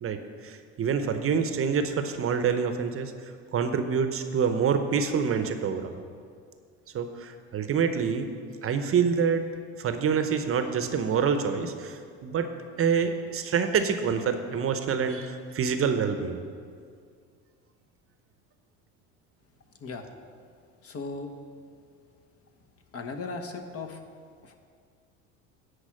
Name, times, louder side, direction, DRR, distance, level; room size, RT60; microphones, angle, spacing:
voice 1, 0.0-6.0 6.9-8.3 8.6-12.5 12.8-16.4, right 6 dB, 40° right, 8 dB, 0.8 m, -27 dB
voice 2, 20.8-21.3 22.9-24.0 24.4-24.6, left 4 dB, 40° left, 5 dB, 1.2 m, -37 dB
10.5 x 4.8 x 7.6 m, 2.2 s
hypercardioid pair, 75°, 35 cm